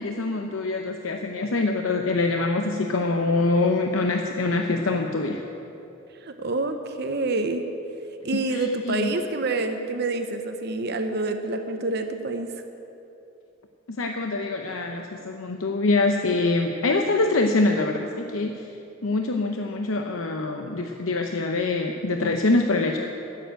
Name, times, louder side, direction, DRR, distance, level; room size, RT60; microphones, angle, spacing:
voice 1, 0.0-5.4 8.5-9.1 13.9-18.7 19.0-23.1, left 3 dB, 80° left, 4 dB, 0.7 m, -24 dB
voice 2, 6.2-7.6 8.2-12.5, right 2 dB, 50° right, 6 dB, 0.8 m, -27 dB
13.5 x 7.7 x 9.0 m, 2.8 s
head